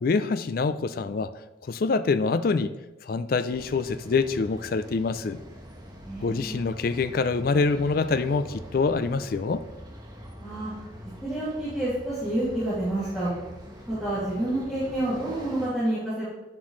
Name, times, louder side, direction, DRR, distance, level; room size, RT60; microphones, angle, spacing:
voice 1, 0.0-1.3 1.7-2.7 3.0-5.4 6.2-9.6, left 4 dB, 50° left, 12 dB, 0.4 m, -25 dB
sound 1, 3.5-15.7, equal, 20° right, 1.1 m, -44 dB
voice 2, 6.0-6.6 10.4-10.7 11.2-13.3 13.9-16.2, right 1 dB, ahead, -13 dB, 2.3 m, -28 dB
9.1 x 7.3 x 3.2 m, 1.0 s
head